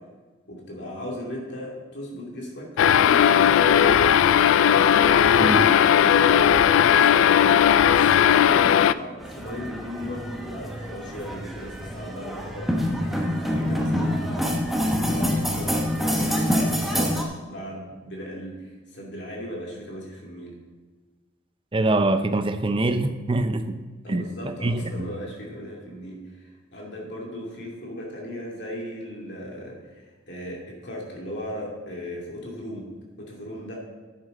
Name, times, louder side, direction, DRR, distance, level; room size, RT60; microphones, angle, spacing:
voice 1, 0.5-4.3 4.9-7.4 7.8-14.5 15.0-20.5 24.0-32.9 33.2-33.8, left 1 dB, 60° left, 2.7 m, -37 dB
sound 1, 2.8-8.9, left 9 dB, 90° left, 0.3 m, -17 dB
sound 2, 9.2-17.2, equal, ahead, 1.1 m, -26 dB
voice 2, 21.7-23.8 24.1-24.3 24.6-25.1, right 2 dB, 25° right, 0.6 m, -24 dB
10.5 x 8.2 x 4.0 m
head